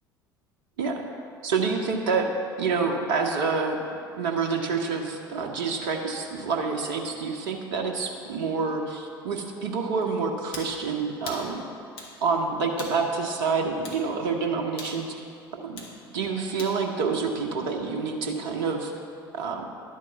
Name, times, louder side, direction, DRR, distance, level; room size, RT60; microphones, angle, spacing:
voice 1, 1.4-2.3 2.6-3.8 4.2-11.6 12.2-15.1 15.5-15.8 16.1-18.9 19.3-19.6, right 4 dB, 65° right, 2 dB, 0.9 m, -27 dB
sound 1, 10.5-10.7 11.3-11.5 12.0-12.2 12.8-13.0 13.8-14.0 14.8-15.0 15.8-15.9 16.6-16.8, left 2 dB, 50° left, 1.6 m, -39 dB
11.0 x 4.6 x 7.1 m, 2.4 s
figure-of-eight pair, 65°, 12 cm